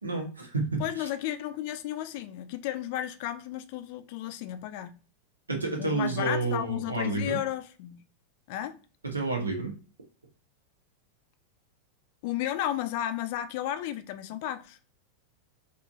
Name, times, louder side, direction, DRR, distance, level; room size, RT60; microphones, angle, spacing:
voice 1, 0.0-1.1 5.5-7.4 9.0-9.7, right 3 dB, 75° right, 0.9 m, -30 dB
voice 2, 0.8-4.9 5.8-8.0 8.5-8.8 12.2-14.8, left 12 dB, 50° left, 0.3 m, -33 dB
3.7 x 2.4 x 2.3 m
figure-of-eight pair, 90°, 0 cm